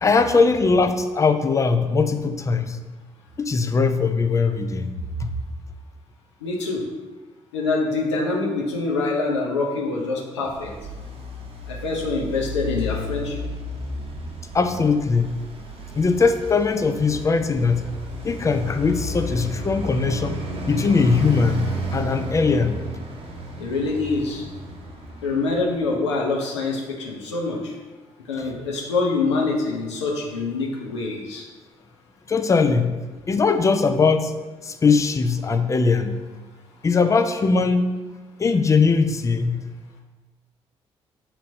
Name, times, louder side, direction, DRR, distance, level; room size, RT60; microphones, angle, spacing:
voice 1, 0.0-2.8 3.4-4.9 5.2-5.3 14.5-15.4 16.0-17.9 18.2-20.4 20.7-22.8 32.3-33.0 33.3-34.3 34.6-36.2 36.8-38.0 38.4-39.6, left 4 dB, 20° left, 8 dB, 0.4 m, -20 dB
voice 2, 6.4-6.8 7.5-10.7 11.7-13.4 23.6-24.4 25.2-27.7 28.3-31.5, left 3 dB, 80° left, -1 dB, 0.6 m, -25 dB
Traffic noise roadway noise, 10.4-25.9, equal, 40° right, 0.8 m, -33 dB
6.2 x 2.9 x 2.6 m, 1.2 s
figure-of-eight pair, 45°, 15 cm